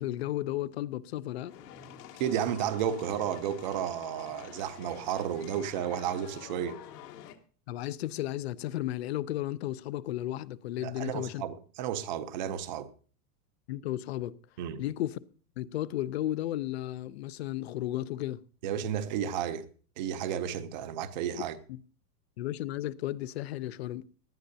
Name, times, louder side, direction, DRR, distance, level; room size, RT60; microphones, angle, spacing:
voice 1, 0.0-1.5 7.7-11.4 13.7-14.4 14.8-15.2 15.6-18.4 22.4-24.0, left 14 dB, 45° left, 0.5 m, -34 dB
sound 1, 1.4-7.4, left 10 dB, 80° left, 1.7 m, -48 dB
voice 2, 2.2-6.8 10.8-12.9 14.6-14.8 18.6-19.7 20.0-21.6, right 9 dB, 30° right, 0.6 m, -32 dB
18.5 x 11.5 x 2.7 m
supercardioid pair, 175°, 47 cm